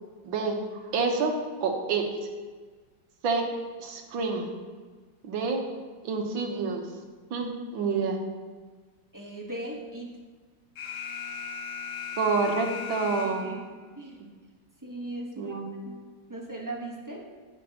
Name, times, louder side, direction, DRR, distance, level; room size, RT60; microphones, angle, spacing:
voice 1, 0.2-1.3 1.6-2.0 3.2-3.4 3.8-4.5 5.2-5.6 6.0-6.9 7.3-8.2 12.2-13.5 15.4-15.7, right 4 dB, 70° right, 2 dB, 1.8 m, -28 dB
voice 2, 9.1-10.1 13.2-14.2 14.8-16.0 16.3-17.3, right 1 dB, 15° right, -1 dB, 0.6 m, -39 dB
Alarm, 10.8-13.7, left 6 dB, 70° left, 2.1 m, -37 dB
15.5 x 6.5 x 2.9 m, 1.4 s
omnidirectional pair, 2.2 m